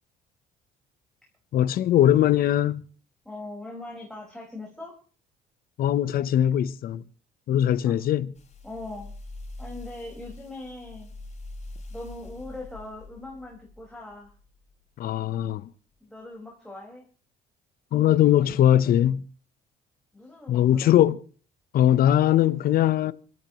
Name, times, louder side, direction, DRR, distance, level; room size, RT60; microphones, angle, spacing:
voice 1, 1.5-2.8 5.8-7.0 7.5-8.3 15.0-15.7 17.9-19.3 20.5-21.2 21.7-23.1, left 11 dB, 60° left, 0.9 m, -21 dB
voice 2, 3.2-5.0 7.8-8.0 8.6-9.1 9.6-11.1 11.9-14.3 16.0-17.0 20.1-20.9, left 2 dB, 5° left, 5.0 m, -40 dB
sound 1, 8.3-14.8 15.4-15.5, left 2 dB, 40° left, 7.9 m, -43 dB
26.0 x 14.0 x 3.1 m
cardioid pair, 110°, 17 cm